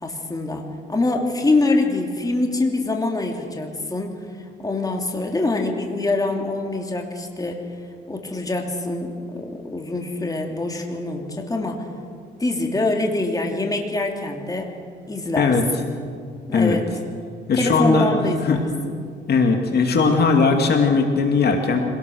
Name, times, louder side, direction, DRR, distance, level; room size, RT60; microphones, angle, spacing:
voice 1, 0.0-4.2 4.6-7.7 8.1-11.9 12.4-14.7 15.1-15.9 16.4-16.8 17.5-19.1, left 2 dB, 20° left, 2 dB, 3.0 m, -24 dB
voice 2, 17.5-18.1 18.4-18.6 19.3-21.8, left 4 dB, 55° left, 3 dB, 2.5 m, -18 dB
25.5 x 18.0 x 6.6 m, 2.1 s
cardioid pair, 90°, 20 cm